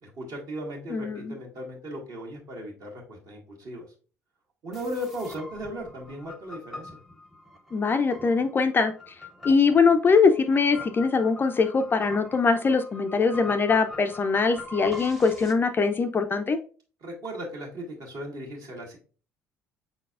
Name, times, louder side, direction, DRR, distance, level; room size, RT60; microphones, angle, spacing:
voice 1, 0.0-3.8 4.6-7.0 17.0-19.0, equal, 45° right, -1 dB, 1.6 m, -37 dB
voice 2, 0.9-1.3 7.7-8.9 9.4-16.6, left 4 dB, 25° left, 8 dB, 0.4 m, -22 dB
sound 1, 4.7-15.5, left 2 dB, ahead, 0.8 m, -43 dB
5.4 x 3.8 x 2.4 m, 0.38 s
figure-of-eight pair, 55°, 8 cm